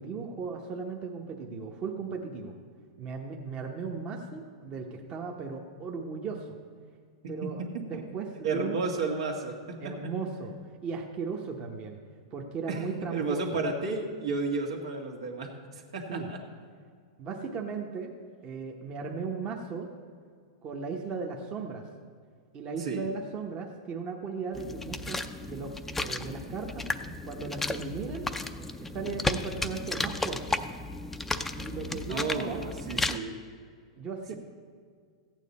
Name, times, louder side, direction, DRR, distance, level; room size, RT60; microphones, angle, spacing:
voice 1, 0.0-2.5 3.0-6.6 7.3-8.8 9.8-10.5 10.8-12.0 12.3-13.4 16.1-16.3 17.2-18.1 18.4-19.9 20.6-21.9 22.5-28.3 28.8-30.4 31.6-32.6 34.0-34.3, right 5 dB, 30° right, 1 dB, 1.0 m, -37 dB
voice 2, 8.4-9.9 12.7-16.4 22.8-23.1 32.1-33.3, right 3 dB, 80° right, 1 dB, 1.9 m, -32 dB
sound 1, 24.5-33.2, left 2 dB, 5° left, 0.5 m, -34 dB
14.5 x 9.1 x 4.2 m, 2.1 s
hypercardioid pair, 135°, 3 cm